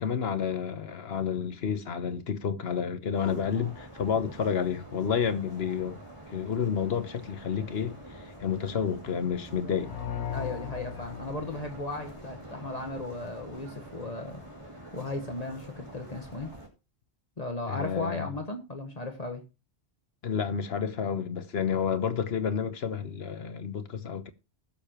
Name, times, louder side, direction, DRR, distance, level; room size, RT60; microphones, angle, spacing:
voice 1, 0.0-6.0 6.3-9.9 17.7-18.3 20.2-24.3, left 7 dB, 70° left, 1.2 m, -30 dB
sound 1, 3.1-16.7, right 1 dB, 30° right, 2.9 m, -46 dB
sound 2, 9.8-12.6, left 9 dB, 85° left, 1.0 m, -38 dB
voice 2, 10.3-14.4 14.9-16.5 17.4-19.4, left 2 dB, 40° left, 1.3 m, -36 dB
20.0 x 6.8 x 2.9 m
omnidirectional pair, 1.1 m